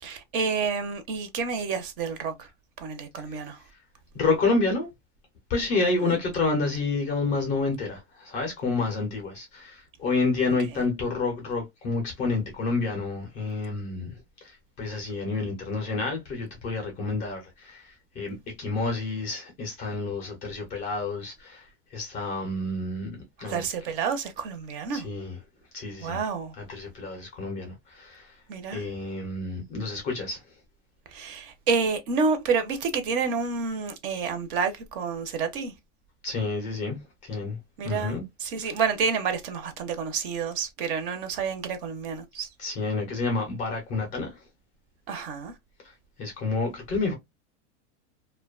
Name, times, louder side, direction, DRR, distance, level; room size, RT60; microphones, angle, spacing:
voice 1, 0.0-2.5 2.8-3.6 6.0-6.2 23.4-25.1 26.0-26.5 28.5-28.8 31.1-35.7 37.8-42.5 45.1-45.5, right 5 dB, 45° right, 0.5 m, -29 dB
voice 2, 4.1-4.9 5.5-23.1 23.4-23.6 24.9-25.4 25.7-26.2 26.6-28.4 28.7-30.4 36.2-37.6 37.8-38.2 42.6-44.4 45.8-45.9 46.2-47.1, left 3 dB, 20° left, 0.4 m, -29 dB
2.5 x 2.2 x 2.3 m
supercardioid pair, 170°, 36 cm